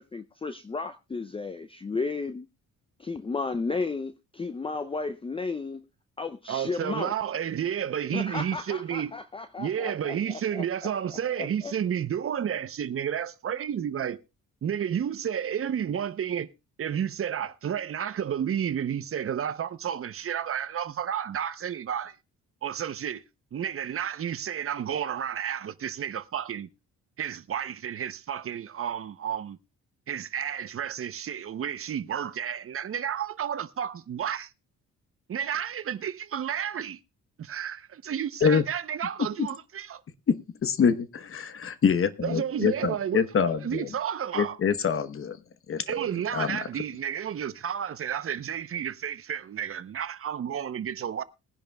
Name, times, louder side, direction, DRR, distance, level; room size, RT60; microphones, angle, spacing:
voice 1, 0.0-2.5 3.0-5.8 6.2-7.1 8.1-10.2 10.5-10.9 11.4-11.7, left 4 dB, 20° left, 0.5 m, -33 dB
voice 2, 6.5-9.2 9.6-14.2 14.6-16.5 16.8-22.2 22.6-23.2 23.5-26.7 27.2-29.6 30.1-34.5 35.3-37.0 37.4-40.0 42.2-43.3 43.6-44.6 45.9-51.2, right 9 dB, 45° right, 0.8 m, -31 dB
voice 3, 40.3-43.9 44.3-45.4 45.7-45.9 46.3-46.7, left 6 dB, 45° left, 1.1 m, -25 dB
21.0 x 10.5 x 2.3 m
cardioid pair, 90°, 30 cm